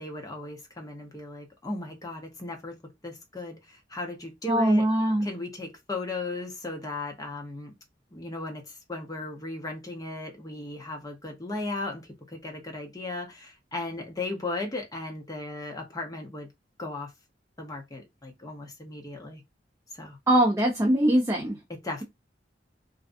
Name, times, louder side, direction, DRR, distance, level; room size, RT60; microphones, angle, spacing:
voice 1, 0.0-2.8 3.0-4.8 5.2-7.7 8.1-16.5 16.8-17.1 17.6-19.4 19.9-20.2 21.8-22.0, left 2 dB, 20° left, 0.7 m, -36 dB
voice 2, 4.5-5.3 20.3-21.6, right 1 dB, 15° right, 0.4 m, -22 dB
2.5 x 2.2 x 2.5 m
head